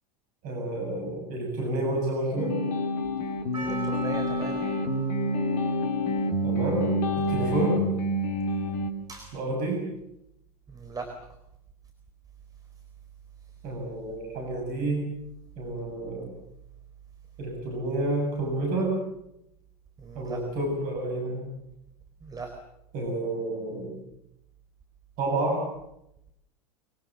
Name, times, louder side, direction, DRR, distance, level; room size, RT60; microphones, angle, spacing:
voice 1, 0.4-2.6 6.4-7.9 9.3-9.9 13.6-15.1 15.6-16.3 17.4-19.0 20.1-21.5 22.9-23.9 25.2-25.7, right 2 dB, 45° right, 2 dB, 7.5 m, -29 dB
sound 1, 2.4-8.9, left 1 dB, 50° left, 3.3 m, -28 dB
Percussion, 3.5-8.5, right 2 dB, 85° right, 4.6 m, -43 dB
voice 2, 3.6-4.6 7.4-7.5 9.1-9.4 10.7-11.1 20.0-20.4 22.2-22.5, right 4 dB, 20° right, 5 dB, 4.0 m, -38 dB
24.0 x 23.0 x 7.5 m, 0.82 s
figure-of-eight pair, 80°, 20 cm